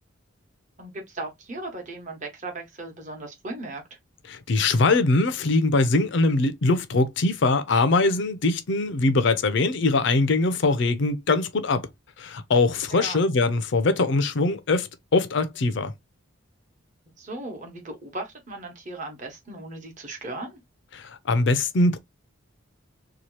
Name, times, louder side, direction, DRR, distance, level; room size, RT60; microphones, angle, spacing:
voice 1, 0.8-4.0 12.9-13.2 17.2-20.6, right 2 dB, 35° right, 1.0 m, -37 dB
voice 2, 4.3-11.9 12.2-15.9 20.9-22.0, left 3 dB, 60° left, 0.5 m, -22 dB
2.8 x 2.3 x 3.0 m
head